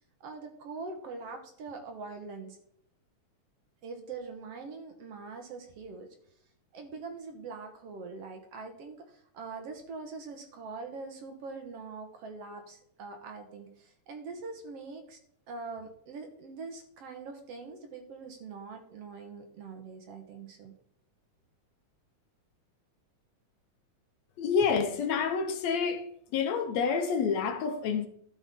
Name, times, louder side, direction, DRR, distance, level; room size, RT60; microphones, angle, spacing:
voice 1, 0.2-2.6 3.8-6.1 6.7-15.2 15.5-20.7, right 4 dB, 60° right, 2.0 m, -43 dB
voice 2, 24.4-26.1 26.3-28.1, left 6 dB, 70° left, 2.0 m, -28 dB
12.5 x 7.1 x 3.7 m
omnidirectional pair, 3.4 m